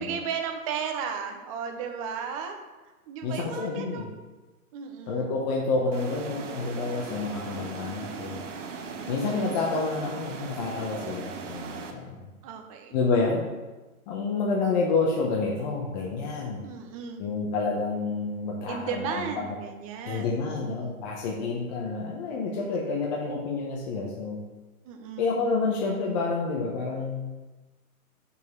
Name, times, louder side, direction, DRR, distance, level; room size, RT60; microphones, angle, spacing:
voice 1, 0.0-2.6 3.1-4.1 4.7-5.3 9.0-9.6 12.4-13.0 16.6-17.2 18.7-20.8 24.8-25.4, right 6 dB, 25° right, 4 dB, 0.6 m, -35 dB
voice 2, 3.2-4.1 5.1-8.4 9.1-12.2 12.9-13.4 14.1-16.7 17.2-19.5 20.0-24.4 25.2-27.3, left 4 dB, 30° left, -2 dB, 0.9 m, -29 dB
sound 1, 5.9-11.9, right 5 dB, 55° right, 1.1 m, -38 dB
5.5 x 4.6 x 5.3 m, 1.2 s
hypercardioid pair, 135°, 44 cm